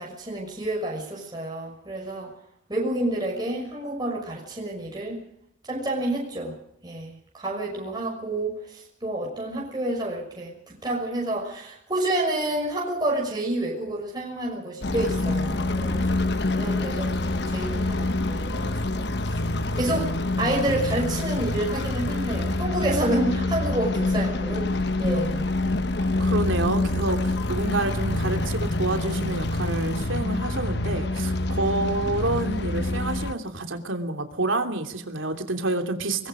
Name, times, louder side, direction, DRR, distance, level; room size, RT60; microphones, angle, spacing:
voice 1, 0.0-2.3 2.7-5.2 5.7-6.5 6.8-19.4 19.7-24.7 25.0-25.5, right 1 dB, 20° right, -2 dB, 6.1 m, -29 dB
sound 1, 14.8-33.4, left 2 dB, 55° left, 1.2 m, -26 dB
voice 2, 26.2-36.3, right 2 dB, 85° right, 6 dB, 3.0 m, -28 dB
26.5 x 21.5 x 5.1 m, 0.72 s
head